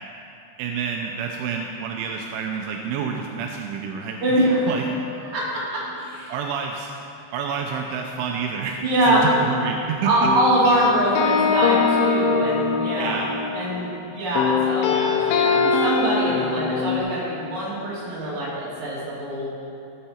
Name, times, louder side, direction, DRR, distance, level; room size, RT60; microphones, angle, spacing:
voice 1, 0.6-4.2 4.7-5.0 6.3-6.9 7.3-8.8 9.0-10.3 13.0-13.3, right 6 dB, 85° right, 2 dB, 2.9 m, -28 dB
voice 2, 4.2-4.8 5.3-6.3 8.8-9.2 10.0-13.2 13.5-19.5, right 1 dB, 40° right, -8 dB, 3.8 m, -23 dB
sound 1, 9.2-9.8 10.2-14.0 14.4-17.0, left 5 dB, 80° left, 3.1 m, -23 dB
16.5 x 7.9 x 4.4 m, 2.7 s
omnidirectional pair, 5.7 m